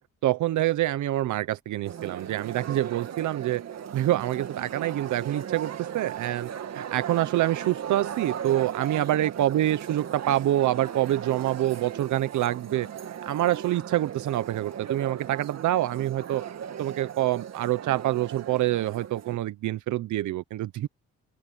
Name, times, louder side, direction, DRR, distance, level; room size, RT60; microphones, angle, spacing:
voice 1, 0.2-3.6 3.9-16.5 16.8-20.9, right 14 dB, 75° right, 0.9 m, -26 dB
sound 1, 1.8-19.4, right 9 dB, 60° right, 2.3 m, -37 dB
open air
cardioid pair, 90°, 30 cm